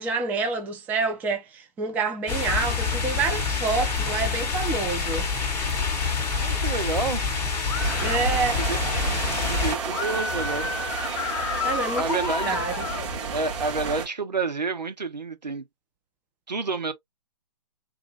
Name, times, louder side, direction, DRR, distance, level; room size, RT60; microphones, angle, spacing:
voice 1, 0.0-5.3 8.0-8.6 11.6-12.8, right 4 dB, 10° right, 0.4 m, -28 dB
sound 1, 2.3-9.7, left 5 dB, 10° left, 0.8 m, -27 dB
voice 2, 6.4-7.2 8.5-8.8 9.5-10.7 11.5-12.6 13.3-15.7 16.5-16.9, right 4 dB, 85° right, 1.0 m, -29 dB
sound 2, 7.7-8.2 9.9-13.1, left 6 dB, 40° left, 0.5 m, -31 dB
sound 3, 7.8-14.1, right 4 dB, 40° right, 2.0 m, -31 dB
3.7 x 2.5 x 2.9 m
figure-of-eight pair, 135°, 21 cm